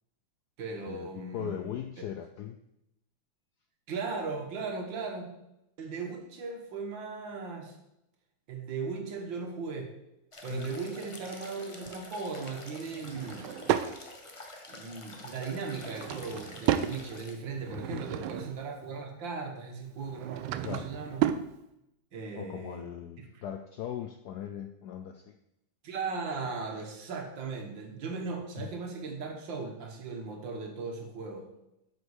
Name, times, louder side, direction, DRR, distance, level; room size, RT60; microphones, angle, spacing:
voice 1, 0.6-1.7 3.9-5.3 5.8-7.8 8.5-9.9 10.4-13.5 14.7-21.3 22.1-22.8 23.2-23.4 25.8-31.5, right 4 dB, 65° right, 3 dB, 2.0 m, -37 dB
voice 2, 1.3-2.6 10.5-10.8 17.7-18.0 20.6-20.9 22.4-25.4 28.6-28.7, left 10 dB, 75° left, 7 dB, 0.9 m, -39 dB
sound 1, 10.3-17.4, left 2 dB, 30° left, 0.6 m, -47 dB
Drawer open or close / Wood, 13.0-13.9 15.6-17.0 17.5-18.7 20.0-21.5, right 11 dB, 85° right, 1.4 m, -32 dB
7.9 x 5.2 x 6.4 m, 0.84 s
omnidirectional pair, 2.2 m